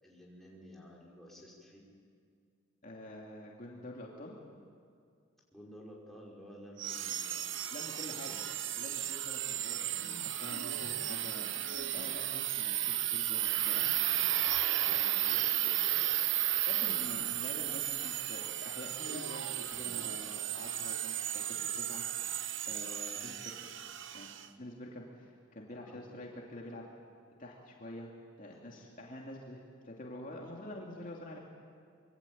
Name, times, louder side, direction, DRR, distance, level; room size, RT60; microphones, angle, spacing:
voice 1, 0.0-1.8 5.5-7.7 8.0-8.7 9.7-10.0 14.8-16.4 25.7-26.1 28.5-28.7, equal, ahead, -4 dB, 5.3 m, -53 dB
voice 2, 2.8-4.4 7.7-8.4 8.8-13.9 16.7-22.0 22.7-23.7 24.1-26.9 27.4-28.1 28.4-31.4, left 1 dB, 40° left, -2 dB, 2.8 m, -47 dB
sound 1, 6.8-24.5, right 12 dB, 65° right, 1.1 m, -34 dB
25.0 x 24.0 x 8.8 m, 2.2 s
head